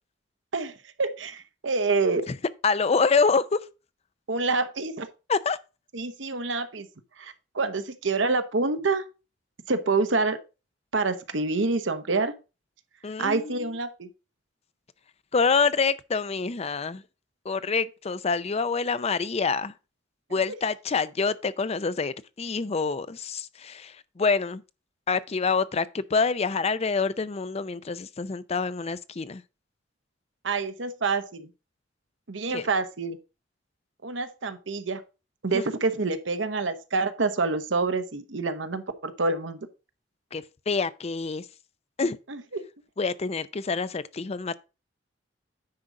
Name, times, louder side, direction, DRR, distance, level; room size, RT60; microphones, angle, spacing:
voice 1, 1.0-2.2 4.3-5.1 5.9-6.9 7.2-9.0 9.7-10.4 10.9-12.3 13.2-14.1 30.4-31.5 32.3-33.2 34.0-35.0 35.4-39.6 42.3-42.6, right 3 dB, 80° right, 1.0 m, -27 dB
voice 2, 2.6-3.6 5.3-5.6 13.0-13.7 15.3-17.0 17.4-19.7 20.3-24.6 25.1-29.4 32.5-32.7 35.5-35.6 40.3-41.5 42.0-42.2 43.0-44.6, left 4 dB, 35° left, 0.5 m, -26 dB
9.7 x 3.9 x 4.9 m
head